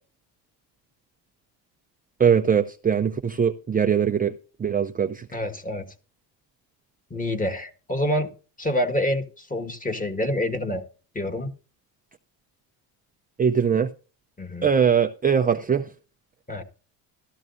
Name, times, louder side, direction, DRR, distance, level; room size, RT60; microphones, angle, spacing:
voice 1, 2.2-4.3 4.6-5.4 13.4-13.9 14.6-15.9, right 7 dB, 20° right, 0.6 m, -21 dB
voice 2, 5.3-5.8 7.1-8.3 8.6-10.8 11.1-11.5 14.4-14.7 16.5-16.6, left 1 dB, 15° left, 1.7 m, -27 dB
13.5 x 13.5 x 2.6 m
cardioid pair, 100°, 47 cm